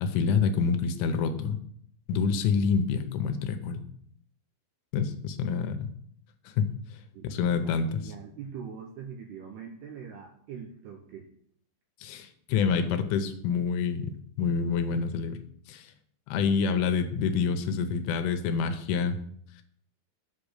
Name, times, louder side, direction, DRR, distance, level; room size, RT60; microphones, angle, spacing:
voice 1, 0.0-1.6 2.1-3.8 4.9-5.9 6.6-6.7 7.2-8.1 12.0-15.4 15.7-15.9 16.3-19.2, left 5 dB, 80° left, 8 dB, 3.2 m, -27 dB
voice 2, 7.1-11.3, right 7 dB, 80° right, 2 dB, 2.4 m, -43 dB
8.1 x 6.0 x 6.6 m, 0.66 s
omnidirectional pair, 5.6 m